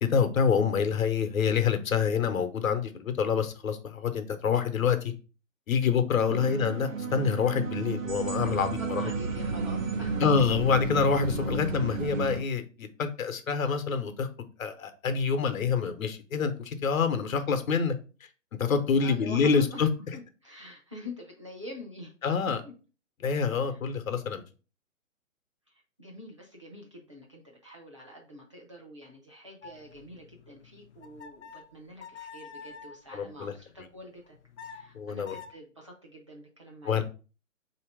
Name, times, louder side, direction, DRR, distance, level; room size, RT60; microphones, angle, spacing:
voice 1, 0.0-5.1 5.7-9.0 10.2-14.3 14.6-17.9 18.6-19.9 22.2-22.6 23.2-24.4 33.1-33.5 34.9-35.3 36.8-37.0, left 6 dB, 85° left, 0.9 m, -26 dB
sound 1, 6.3-12.4, right 4 dB, 70° right, 0.8 m, -32 dB
voice 2, 8.4-10.2 18.9-19.9 20.1-22.1 22.6-22.7 23.5-23.9 25.7-37.0, left 1 dB, 25° right, 0.6 m, -46 dB
sound 2, 29.6-33.0 34.2-35.5, left 6 dB, 60° left, 0.5 m, -47 dB
3.9 x 2.9 x 4.7 m
hypercardioid pair, 180°, 40 cm